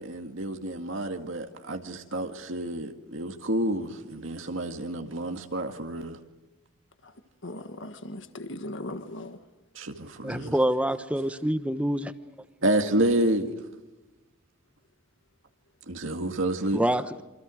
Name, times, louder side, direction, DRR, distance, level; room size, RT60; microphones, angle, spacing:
voice 1, 0.0-6.2 9.8-10.5 12.6-13.6 15.9-16.8, right 1 dB, 65° right, 2.1 m, -29 dB
voice 2, 7.4-9.4, left 1 dB, 55° left, 1.5 m, -38 dB
voice 3, 10.2-12.1 16.7-17.2, right 1 dB, 5° right, 1.1 m, -26 dB
28.5 x 26.0 x 6.4 m
head